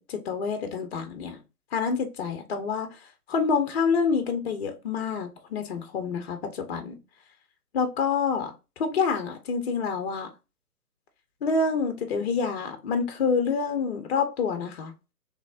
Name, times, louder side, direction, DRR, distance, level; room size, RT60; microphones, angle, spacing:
voice 1, 0.1-1.4 1.7-2.9 3.3-7.0 7.7-10.3 11.4-14.9, left 5 dB, 45° left, 0.8 m, -27 dB
4.0 x 3.2 x 2.4 m
figure-of-eight pair, 135°, 45 cm